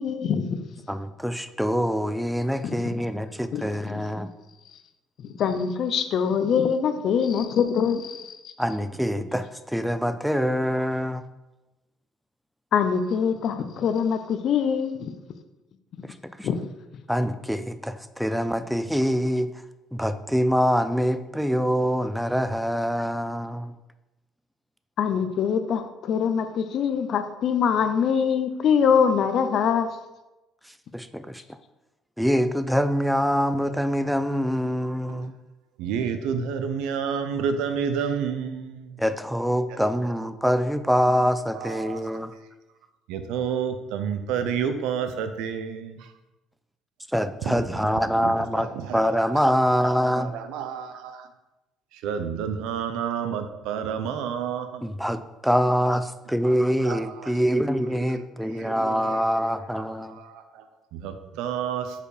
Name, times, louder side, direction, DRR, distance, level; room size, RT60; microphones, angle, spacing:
voice 1, 0.0-0.7 2.6-2.8 3.5-4.0 5.4-8.5 12.7-15.1 16.0-16.1 16.4-16.6 25.0-29.9, left 7 dB, 50° left, 9 dB, 0.5 m, -24 dB
voice 2, 0.9-4.3 8.6-11.2 16.0-16.5 17.1-19.5 19.9-23.7 30.9-31.4 32.2-35.3 39.0-42.3 47.1-48.7 48.9-50.3 54.8-60.2, equal, ahead, 11 dB, 0.3 m, -25 dB
voice 3, 35.8-38.9 40.5-40.6 41.1-41.2 41.6-42.0 43.1-46.0 47.4-49.4 50.3-51.2 52.0-54.8 56.4-56.6 56.8-57.3 58.6-59.2 60.2-60.4 60.9-61.9, right 7 dB, 90° right, 9 dB, 0.6 m, -30 dB
5.1 x 4.3 x 4.9 m, 1.0 s
cardioid pair, 145°, 0 cm